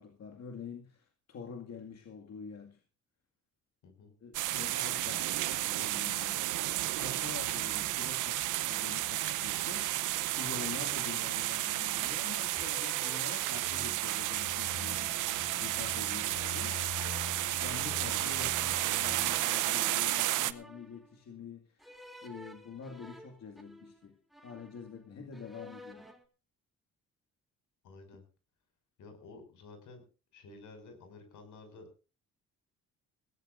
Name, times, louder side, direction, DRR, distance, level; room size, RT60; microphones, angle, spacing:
voice 1, 0.0-2.8 4.2-6.5 7.0-15.2 15.6-16.8 17.6-21.9 22.2-24.2 24.4-26.1, left 6 dB, 60° left, 2.2 m, -46 dB
sound 1, 4.3-20.5, right 15 dB, 85° right, 0.9 m, -32 dB
sound 2, 11.2-11.8 12.5-13.9 14.7-15.9 16.5-18.1 18.8-21.2 21.8-24.1 24.3-25.0 25.3-26.2, equal, ahead, 3.0 m, -52 dB
sound 3, 13.5-19.5, left 3 dB, 60° right, 2.8 m, -45 dB
voice 2, 17.8-18.1 27.8-28.2 29.0-30.1 30.3-32.0, left 3 dB, 80° left, 6.3 m, -52 dB
21.0 x 16.5 x 2.6 m
cardioid pair, 90°, 30 cm